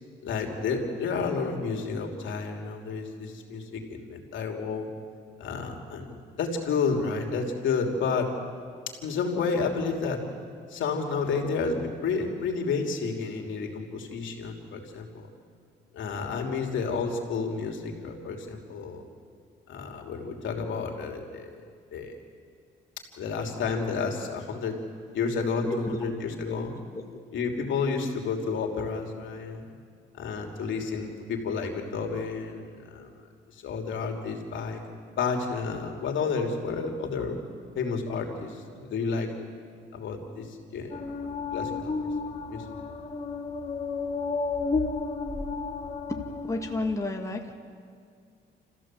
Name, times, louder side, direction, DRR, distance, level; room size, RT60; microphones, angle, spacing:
voice 1, 0.2-4.9 5.4-8.3 9.0-10.2 10.7-15.3 15.9-19.0 19.7-21.5 21.9-22.2 23.2-24.8 25.1-26.7 27.3-29.6 30.2-33.1 33.6-34.8 35.2-37.4 37.7-39.3 39.9-42.1 42.5-42.6, left 5 dB, 75° left, 2 dB, 3.1 m, -31 dB
voice 2, 25.6-26.0 26.5-26.6 26.9-27.0 46.1-47.5, left 2 dB, 15° left, 2 dB, 2.0 m, -32 dB
sound 1, 40.9-46.9, left 4 dB, 35° left, 2.0 m, -32 dB
29.5 x 15.0 x 7.7 m, 2.2 s
cardioid pair, 90°, 20 cm